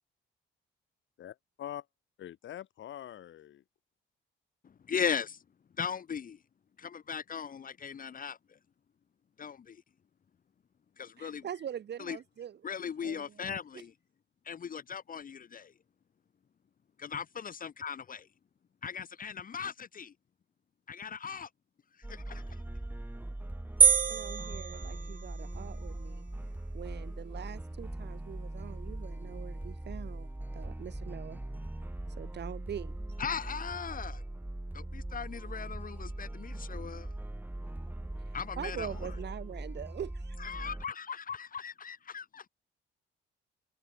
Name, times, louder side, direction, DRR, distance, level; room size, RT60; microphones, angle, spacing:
voice 1, 1.2-1.9 2.2-3.6, left 11 dB, 70° left, 7.6 m, -44 dB
voice 2, 4.9-5.4 5.8-6.4 6.8-8.4 9.4-9.8 11.0-11.4 12.0-12.2 12.6-13.9 14.4-15.7 17.0-18.3 18.8-20.1 20.9-21.5 22.1-22.6 33.2-34.2 34.7-37.1 38.3-38.9 40.4-42.5, left 7 dB, 45° left, 1.4 m, -38 dB
voice 3, 11.2-12.6 13.0-13.8 24.1-26.3 26.7-31.4 32.2-32.9 38.2-40.4, right 9 dB, 60° right, 2.4 m, -43 dB
sound 1, 22.0-40.9, right 1 dB, 10° right, 4.7 m, -40 dB
sound 2, 23.8-25.6, right 7 dB, 40° right, 1.2 m, -26 dB
cardioid pair, 90°, 20 cm